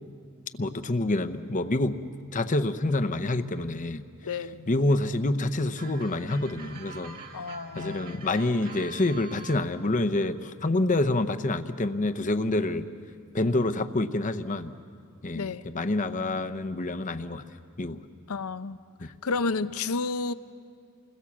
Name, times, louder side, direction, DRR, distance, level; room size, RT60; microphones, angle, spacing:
voice 1, 0.6-2.0 2.3-4.0 4.7-7.2 7.8-12.9 13.3-14.7 15.2-17.4 17.8-18.0 19.0-19.1, left 2 dB, 35° left, 10 dB, 0.8 m, -27 dB
voice 2, 4.2-4.7 7.3-8.3 15.3-15.6 18.3-20.3, left 4 dB, 85° left, 13 dB, 0.7 m, -31 dB
sound 1, 5.8-9.7, right 4 dB, 40° right, 1.7 m, -45 dB
29.0 x 21.0 x 7.3 m, 2.2 s
head